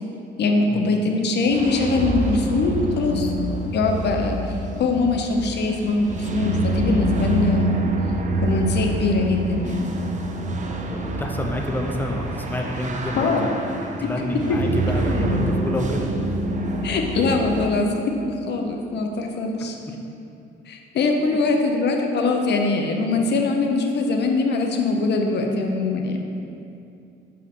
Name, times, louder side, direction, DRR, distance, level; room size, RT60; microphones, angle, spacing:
voice 1, 0.4-4.5 4.8-7.9 8.4-9.9 13.2-13.5 16.8-17.9 18.5-19.8 20.7-26.3, left 3 dB, 60° left, 2 dB, 0.7 m, -22 dB
sound 1, 1.5-17.7, right 1 dB, 40° right, 0.6 m, -26 dB
voice 2, 10.4-13.5 13.8-16.1 19.6-19.9, left 1 dB, 10° left, 2 dB, 0.6 m, -29 dB
6.4 x 4.5 x 3.6 m, 2.6 s
cardioid pair, 90°, 20 cm